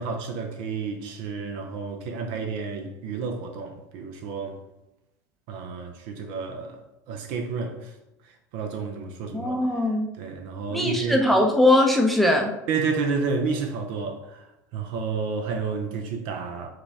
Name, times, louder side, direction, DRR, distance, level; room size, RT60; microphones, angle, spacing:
voice 1, 0.0-4.6 5.5-6.8 7.1-8.0 8.2-9.6 10.2-11.2 12.7-16.7, right 5 dB, 60° right, 0.5 m, -30 dB
voice 2, 9.3-10.1 10.7-12.5, left 1 dB, ahead, 0.5 m, -20 dB
4.8 x 2.3 x 3.3 m
hypercardioid pair, 85°, 10 cm